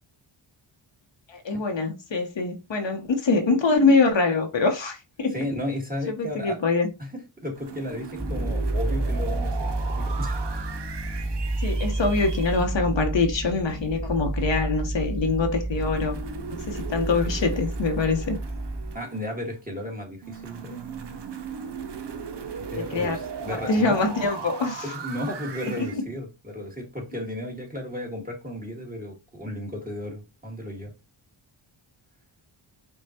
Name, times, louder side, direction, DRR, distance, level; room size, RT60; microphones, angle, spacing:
voice 1, 1.3-5.4 6.1-6.9 11.6-16.2 16.5-18.4 22.7-23.2 23.5-24.8 25.6-26.0, left 3 dB, 60° left, 0.9 m, -24 dB
voice 2, 5.3-6.6 7.0-10.4 18.9-21.2 22.6-24.0 24.8-30.9, left 1 dB, 15° right, 1.6 m, -34 dB
sound 1, 7.6-12.6 15.7-19.5 20.2-26.0, right 5 dB, 55° right, 0.7 m, -38 dB
sound 2, 8.2-19.0, right 2 dB, ahead, 0.5 m, -29 dB
5.3 x 2.3 x 2.8 m
cardioid pair, 65°, 50 cm